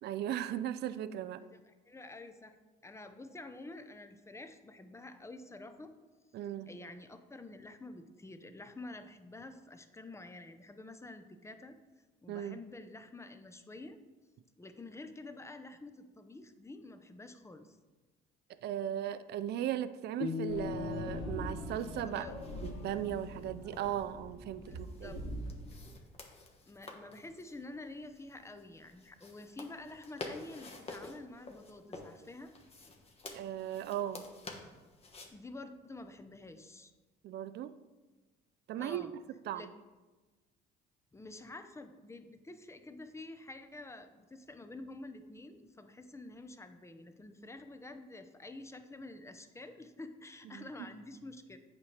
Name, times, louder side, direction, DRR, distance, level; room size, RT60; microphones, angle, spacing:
voice 1, 0.0-1.4 6.3-6.7 12.3-12.6 18.6-22.3 22.6-25.2 33.3-34.3 37.2-37.7 38.7-39.1 39.5-39.7 50.5-50.6, right 11 dB, 55° right, 13 dB, 0.4 m, -37 dB
voice 2, 1.5-2.6 2.8-5.9 6.7-11.8 12.2-14.0 14.6-17.8 22.0-22.3 24.7-25.2 26.7-32.5 35.3-36.9 38.8-39.1 39.5-39.7 41.1-51.6, left 2 dB, 15° left, 9 dB, 0.7 m, -49 dB
sound 1, 20.2-23.3, left 6 dB, 45° left, 0.8 m, -41 dB
sound 2, 20.5-25.9, equal, 80° left, 2.2 m, -43 dB
sound 3, 21.6-35.3, left 2 dB, 30° left, 1.2 m, -51 dB
8.2 x 5.1 x 3.3 m, 1.2 s
supercardioid pair, 75°, 21 cm